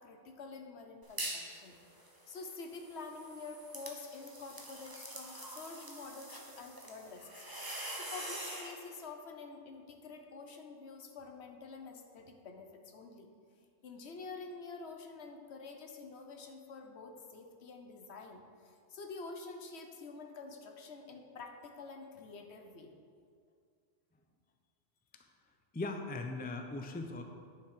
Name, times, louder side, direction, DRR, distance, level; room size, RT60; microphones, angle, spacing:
voice 1, 0.0-1.8 2.3-13.3 13.8-22.9, left 4 dB, 65° left, 4 dB, 1.1 m, -48 dB
sound 1, 1.0-1.5 1.9-8.7, right 1 dB, 20° right, 1.0 m, -45 dB
voice 2, 25.7-27.2, left 2 dB, 15° left, 5 dB, 0.3 m, -39 dB
10.5 x 6.0 x 4.8 m, 2.2 s
omnidirectional pair, 1.2 m